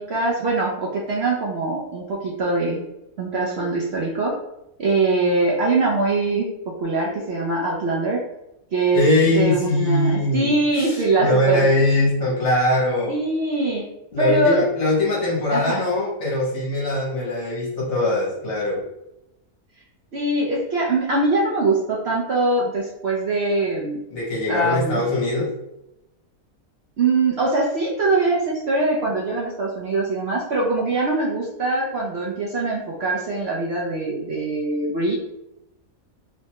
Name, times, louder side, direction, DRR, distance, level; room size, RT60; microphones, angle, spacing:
voice 1, 0.0-2.8 3.2-4.3 4.8-6.5 6.8-8.2 8.7-9.0 9.3-11.7 13.1-13.8 14.2-14.6 15.5-15.8 20.1-24.0 24.5-25.0 27.0-35.1, right 2 dB, 65° right, -3 dB, 0.6 m, -22 dB
voice 2, 8.9-13.2 14.1-18.8 24.1-25.5, left 1 dB, 55° left, -4 dB, 1.2 m, -21 dB
3.1 x 2.1 x 2.8 m, 0.86 s
omnidirectional pair, 1.6 m